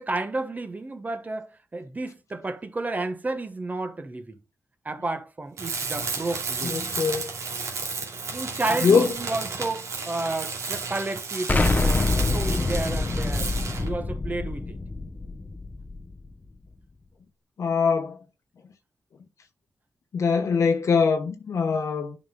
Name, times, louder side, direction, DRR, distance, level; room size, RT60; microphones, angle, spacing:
voice 1, 0.0-4.4 4.8-6.9 8.3-13.5 13.8-14.8, right 2 dB, 30° right, 1.3 m, -31 dB
Tools, 5.6-13.9, right 4 dB, 80° right, 2.6 m, -32 dB
voice 2, 6.6-7.3 8.8-9.1 17.6-18.2 20.1-22.1, left 5 dB, 75° left, 1.1 m, -22 dB
Explosion, 11.5-16.3, left 3 dB, 30° left, 0.8 m, -26 dB
11.0 x 5.4 x 2.3 m
cardioid pair, 90°, 5 cm